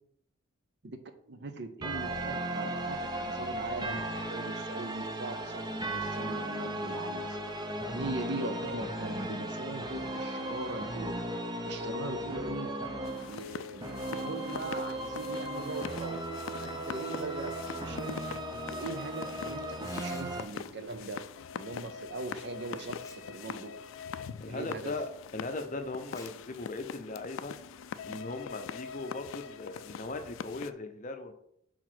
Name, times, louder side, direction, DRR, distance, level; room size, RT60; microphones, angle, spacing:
voice 1, 1.3-7.6 7.9-11.3 11.6-12.7 13.3-16.2 16.6-21.2 21.5-23.7 24.5-24.9, right 2 dB, 55° right, 8 dB, 0.7 m, -40 dB
sound 1, 1.8-20.4, right 1 dB, 20° right, 0.7 m, -36 dB
sound 2, 13.0-30.7, left 7 dB, 70° left, 0.3 m, -43 dB
Tearing, 19.8-20.7 22.2-22.3 22.7-23.5 23.8-24.0 24.6-24.7 26.0-26.3 26.7-26.8 27.6-27.9, left 3 dB, 15° left, 1.0 m, -51 dB
voice 2, 24.4-27.5 28.1-31.3, left 3 dB, 35° left, 6 dB, 0.7 m, -38 dB
4.8 x 4.3 x 6.0 m, 0.72 s
head